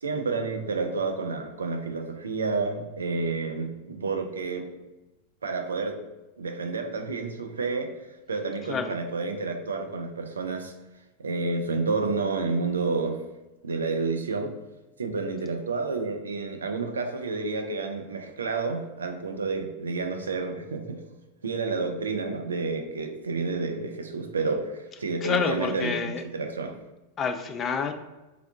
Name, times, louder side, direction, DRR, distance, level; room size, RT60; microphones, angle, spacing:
voice 1, 0.0-4.7 5.4-6.0 6.4-7.9 8.3-10.7 11.2-13.2 13.6-14.5 15.0-21.1 21.4-26.8, right 3 dB, 70° right, 5 dB, 0.4 m, -30 dB
voice 2, 25.2-26.2 27.2-27.9, left 6 dB, 25° left, 7 dB, 0.3 m, -28 dB
3.5 x 2.3 x 3.4 m, 1.1 s
figure-of-eight pair, 90°, 0 cm